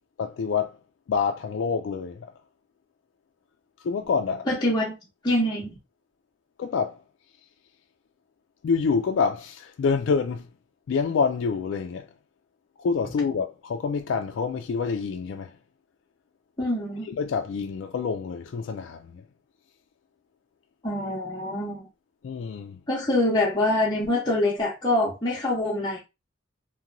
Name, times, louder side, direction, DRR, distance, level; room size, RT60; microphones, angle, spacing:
voice 1, 0.2-0.8 1.1-2.3 3.8-4.5 6.6-7.0 8.6-10.5 10.9-12.1 12.8-15.6 17.1-19.2 22.2-22.8, left 5 dB, 70° left, 0.3 m, -27 dB
voice 2, 4.5-4.9 5.2-5.8 16.6-17.0 20.8-21.8 22.9-26.0, left 1 dB, 20° left, 0.7 m, -25 dB
2.9 x 2.2 x 2.5 m
head